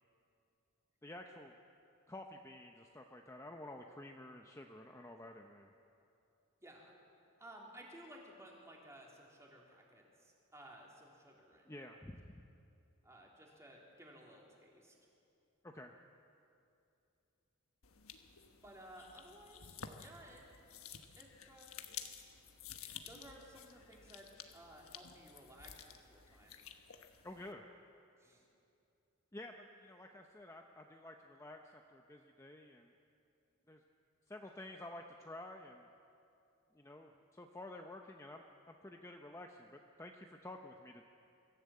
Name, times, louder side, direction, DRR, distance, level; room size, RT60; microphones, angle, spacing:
voice 1, 1.0-1.5 2.1-5.7 11.7-12.5 15.6-15.9 27.2-27.7 29.3-32.9 33.7-33.8 34.3-35.9 36.7-41.0, left 1 dB, 15° left, 3 dB, 0.8 m, -51 dB
voice 2, 6.6-6.9 7.4-11.8 13.0-14.9 18.6-20.4 21.2-21.8 23.1-24.3 24.5-26.6 28.2-28.4, right 1 dB, 15° right, -2 dB, 3.3 m, -57 dB
sound 1, 17.8-27.5, left 8 dB, 85° left, 1.3 m, -53 dB
23.5 x 14.5 x 8.5 m, 2.7 s
head